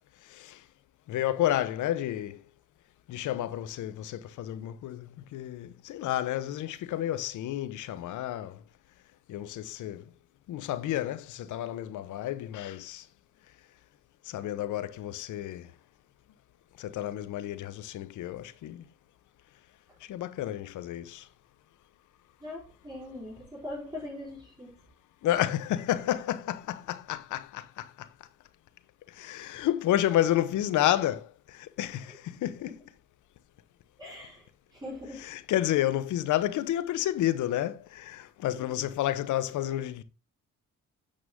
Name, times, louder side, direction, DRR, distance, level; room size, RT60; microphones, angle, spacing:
voice 1, 0.3-0.6 1.1-2.4 3.1-8.6 9.3-10.0 10.5-13.0 14.3-15.7 16.8-18.8 20.1-21.3 25.2-28.1 29.1-32.8 35.2-40.0, left 13 dB, 80° left, 0.9 m, -30 dB
voice 2, 22.4-24.8 34.0-35.2 38.5-38.6, left 1 dB, 15° right, 4.4 m, -41 dB
8.8 x 6.3 x 3.6 m
cardioid pair, 90°, 30 cm